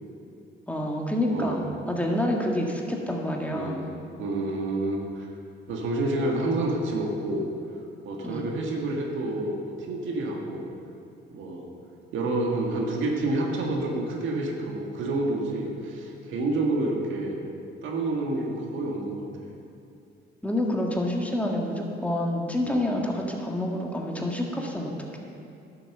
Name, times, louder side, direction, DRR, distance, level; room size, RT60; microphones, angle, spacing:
voice 1, 0.7-1.6 1.9-3.8 8.2-8.5 20.4-25.2, left 1 dB, 5° left, 0 dB, 1.7 m, -28 dB
voice 2, 1.3-1.6 3.5-3.8 4.2-5.3 5.7-7.5 8.1-9.6 9.9-10.6 11.3-11.6 12.1-17.4 17.8-19.5 22.7-22.8, right 2 dB, 80° right, 0 dB, 1.8 m, -28 dB
11.0 x 7.7 x 6.7 m, 2.5 s
cardioid pair, 90°, 20 cm